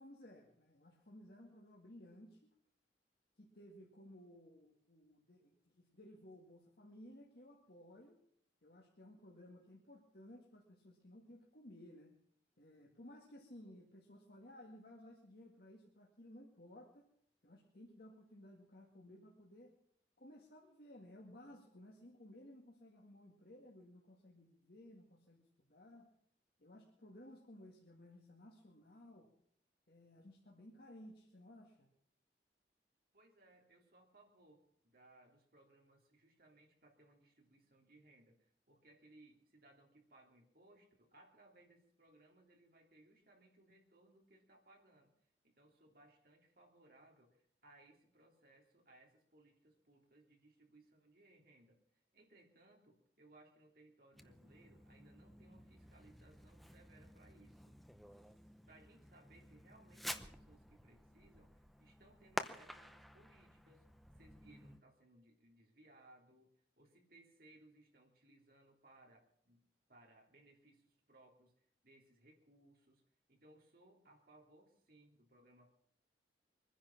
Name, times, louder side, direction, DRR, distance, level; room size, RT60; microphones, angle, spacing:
voice 1, 0.0-2.5 3.4-8.2 8.6-12.1 12.6-17.1 17.4-19.7 20.2-26.1 26.6-29.3 29.9-31.9, left 1 dB, 55° left, -1 dB, 2.1 m, -58 dB
voice 2, 33.1-45.1 45.4-57.8 58.1-58.3 58.7-63.9 64.2-66.5 66.8-69.6 69.9-73.0 73.3-75.7, right 2 dB, 55° right, 1 dB, 3.3 m, -66 dB
Fireworks, 54.1-64.8, equal, ahead, 0.8 m, -51 dB
23.5 x 10.5 x 5.9 m, 0.67 s
head